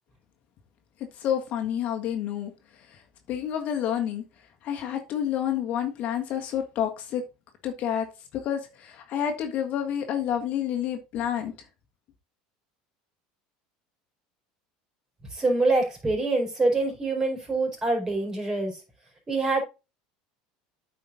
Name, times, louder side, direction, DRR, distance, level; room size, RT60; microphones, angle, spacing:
voice 1, 1.2-2.5 2.9-3.0 3.3-4.2 4.6-7.2 7.6-8.1 8.3-11.5, left 9 dB, 50° left, 1.5 m, -29 dB
voice 2, 15.3-18.8 19.3-19.6, right 2 dB, 20° right, 4.5 m, -25 dB
8.6 x 5.1 x 4.0 m
supercardioid pair, 120°, 3 cm